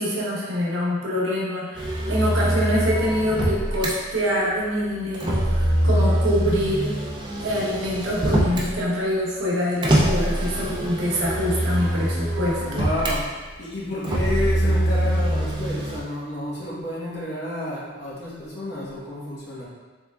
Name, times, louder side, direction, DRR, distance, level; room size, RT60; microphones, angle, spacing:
voice 1, 0.0-6.9 7.4-12.8, equal, 65° right, -6 dB, 0.9 m, -25 dB
Motor vehicle (road), 1.7-3.9 5.1-8.7 9.8-13.2 14.0-16.0, right 1 dB, 20° right, 0.4 m, -23 dB
voice 2, 12.6-19.7, left 1 dB, 55° left, -8 dB, 1.1 m, -30 dB
3.6 x 3.3 x 2.3 m, 1.3 s
head